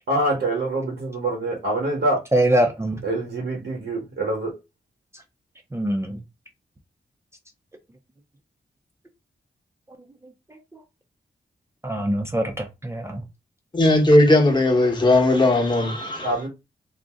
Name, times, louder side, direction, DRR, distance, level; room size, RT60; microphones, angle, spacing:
voice 1, 0.1-2.2 3.0-4.6 16.2-16.5, right 1 dB, 90° right, 1.0 m, -25 dB
voice 2, 2.3-3.0 5.7-6.2 11.8-13.2, right 1 dB, 15° right, 0.5 m, -23 dB
voice 3, 13.7-16.3, left 1 dB, 25° left, 1.0 m, -17 dB
2.5 x 2.0 x 3.5 m
wide cardioid pair, 95°, 18 cm